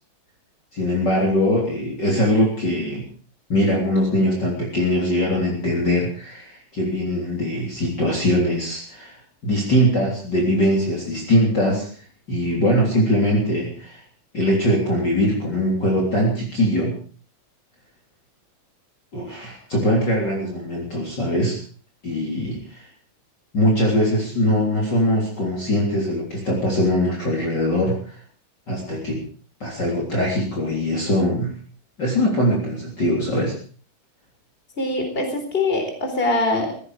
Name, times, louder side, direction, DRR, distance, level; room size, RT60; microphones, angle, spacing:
voice 1, 0.7-3.0 3.5-9.2 9.4-11.9 12.3-14.0 14.3-17.0 19.1-21.6 22.0-22.8 23.5-28.2 28.7-29.2 29.6-31.5 32.0-33.5, equal, 35° left, -2 dB, 3.9 m, -21 dB
voice 2, 34.8-36.7, left 2 dB, 20° left, 4 dB, 4.2 m, -23 dB
17.5 x 16.0 x 4.9 m, 0.43 s
omnidirectional pair, 3.4 m